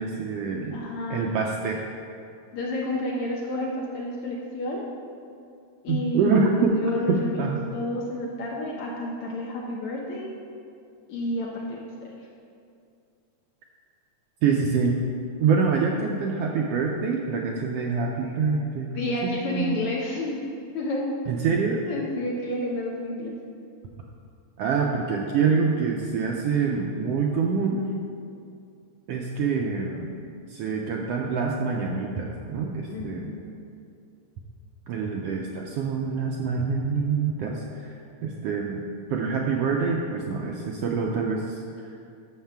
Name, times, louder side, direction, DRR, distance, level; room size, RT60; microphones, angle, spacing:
voice 1, 0.0-1.8 5.9-6.7 7.4-7.6 14.4-14.9 15.4-19.0 19.2-19.8 21.3-21.8 24.6-27.8 29.1-30.1 30.5-33.3 34.9-38.0 38.2-38.8 39.1-41.6, right 5 dB, 80° right, 0 dB, 1.4 m, -26 dB
voice 2, 0.7-1.3 2.5-4.9 5.8-6.5 6.7-10.3 11.1-11.8 19.0-20.4 20.7-21.1 21.9-23.4 32.9-33.5 37.4-37.5, left 1 dB, 70° left, -2 dB, 1.5 m, -30 dB
13.0 x 6.5 x 3.5 m, 2.4 s
omnidirectional pair, 3.3 m